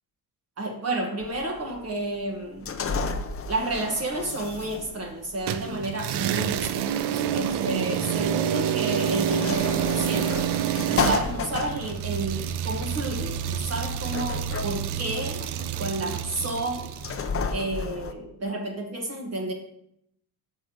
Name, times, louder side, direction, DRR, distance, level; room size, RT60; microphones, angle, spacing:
voice 1, 0.6-2.7 3.5-15.4 15.8-16.9 17.5-19.5, right 2 dB, 35° right, 1 dB, 1.6 m, -31 dB
sound 1, 1.2-18.1, left 5 dB, 30° left, 0.8 m, -34 dB
sound 2, 5.5-17.2, right 9 dB, 70° right, 0.7 m, -28 dB
13.5 x 5.5 x 3.1 m, 0.76 s
cardioid pair, 100°, 42 cm